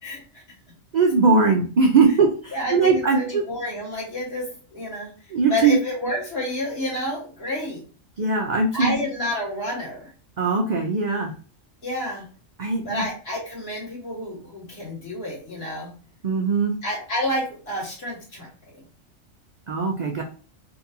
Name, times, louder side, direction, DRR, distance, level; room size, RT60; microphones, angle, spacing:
voice 1, 0.0-0.4 2.5-5.1 5.5-7.8 8.7-10.1 11.8-12.3 12.8-15.9 16.8-18.8, left 1 dB, 50° left, -4 dB, 1.8 m, -29 dB
voice 2, 0.9-3.4 5.3-5.8 8.2-9.0 10.4-11.3 12.6-13.0 16.2-16.7 19.7-20.2, right 4 dB, 75° right, 2 dB, 0.4 m, -20 dB
3.7 x 2.6 x 2.7 m, 0.40 s
omnidirectional pair, 1.4 m